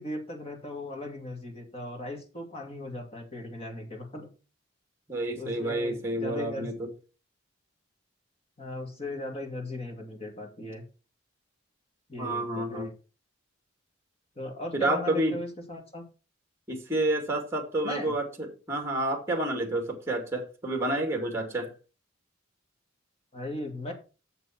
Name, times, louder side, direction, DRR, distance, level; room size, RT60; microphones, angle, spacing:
voice 1, 0.0-4.3 5.3-6.7 8.6-10.8 12.1-12.9 14.4-16.0 17.8-18.1 23.3-23.9, left 1 dB, 30° left, 2.3 m, -38 dB
voice 2, 5.1-6.9 12.2-12.9 14.7-15.3 16.7-21.7, right 1 dB, 15° right, 2.2 m, -29 dB
8.2 x 6.9 x 4.4 m
head